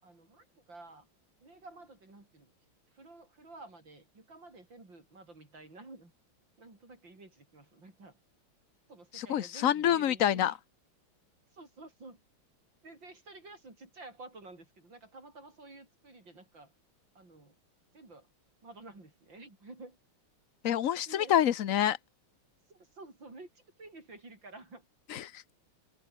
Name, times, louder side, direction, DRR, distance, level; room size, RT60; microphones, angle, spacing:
voice 1, 0.0-1.1 1.4-2.5 2.9-6.1 6.6-8.2 8.9-10.5 11.5-12.2 12.8-16.7 17.2-17.6 17.9-18.3 18.6-20.0 21.1-21.4 22.7-24.9, right 2 dB, 60° right, 7.2 m, -51 dB
voice 2, 9.1-10.5 20.6-22.0 25.1-25.4, left 10 dB, 55° left, 0.9 m, -27 dB
open air
omnidirectional pair, 2.4 m